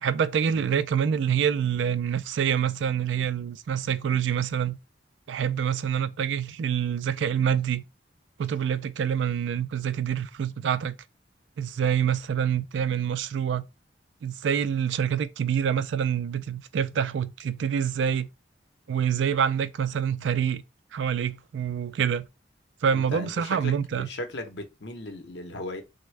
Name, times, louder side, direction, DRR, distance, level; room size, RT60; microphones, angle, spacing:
voice 1, 0.0-4.8 5.3-7.8 8.4-11.0 11.6-13.7 14.2-18.3 18.9-20.6 20.9-22.3 22.8-24.1, right 8 dB, 80° right, 0.3 m, -26 dB
voice 2, 22.9-25.8, left 2 dB, 70° left, 0.8 m, -37 dB
3.4 x 2.1 x 3.2 m
head